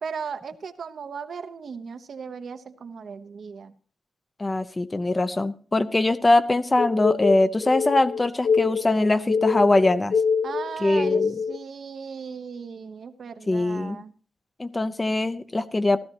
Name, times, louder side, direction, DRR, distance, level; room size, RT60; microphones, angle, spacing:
voice 1, 0.0-3.7 10.4-14.1, right 6 dB, 65° right, 8 dB, 1.0 m, -36 dB
voice 2, 4.4-10.1 10.8-11.3 13.5-14.0 14.6-16.0, left 2 dB, 25° left, 11 dB, 0.8 m, -22 dB
sound 1, 6.8-11.6, left 5 dB, 60° left, 0.5 m, -25 dB
15.5 x 13.0 x 3.0 m, 0.41 s
cardioid pair, 95°, 0 cm